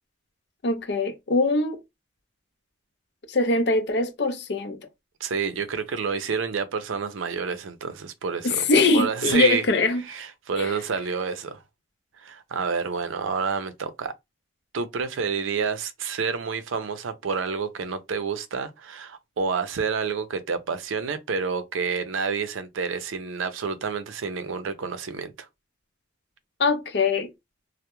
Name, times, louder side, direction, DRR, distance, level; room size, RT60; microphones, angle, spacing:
voice 1, 0.6-1.8 3.3-4.8 8.4-10.0 10.6-10.8 26.6-27.3, left 3 dB, 55° left, 0.5 m, -22 dB
voice 2, 5.2-8.6 8.9-9.7 10.0-11.6 12.2-14.1 14.7-25.5, right 5 dB, 80° right, 0.4 m, -29 dB
2.2 x 2.0 x 2.9 m
head